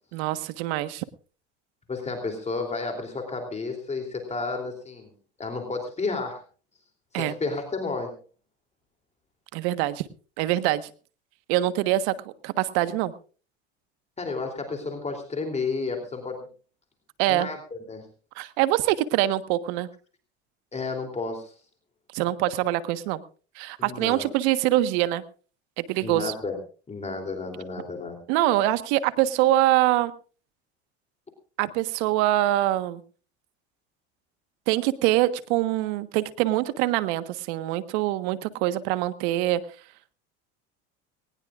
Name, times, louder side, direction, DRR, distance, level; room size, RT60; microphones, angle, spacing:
voice 1, 0.1-1.0 7.1-7.3 9.5-10.1 10.4-10.9 11.5-12.1 12.4-13.1 17.2-17.5 18.4-19.9 22.1-23.2 23.5-25.2 25.8-26.3 28.3-30.1 31.6-33.0 34.7-39.6, right 15 dB, 75° right, 12 dB, 1.4 m, -24 dB
voice 2, 1.9-5.1 5.4-6.4 7.1-8.2 14.2-16.4 17.3-18.1 20.7-21.5 23.8-24.3 26.0-26.6 26.9-28.2, left 3 dB, 20° left, 3 dB, 3.3 m, -32 dB
20.5 x 19.0 x 2.5 m, 0.38 s
supercardioid pair, 105°, 33 cm